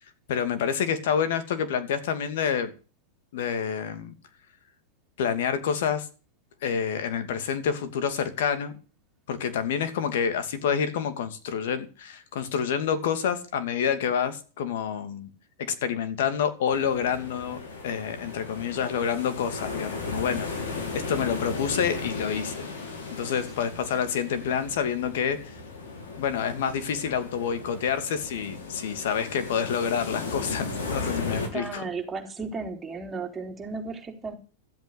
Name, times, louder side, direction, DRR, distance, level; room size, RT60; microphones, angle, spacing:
voice 1, 0.3-2.7 3.3-4.1 5.2-6.1 6.6-8.8 9.3-15.3 15.7-17.6 17.8-20.5 21.1-22.7 23.1-25.5 26.2-30.7 30.9-31.9, left 7 dB, 70° left, 10 dB, 2.6 m, -28 dB
sound 1, 16.7-31.5, left 3 dB, 85° left, 6.4 m, -36 dB
voice 2, 31.5-34.3, right 4 dB, 15° right, 2 dB, 3.6 m, -34 dB
13.5 x 8.1 x 8.4 m, 0.37 s
supercardioid pair, 140°, 0 cm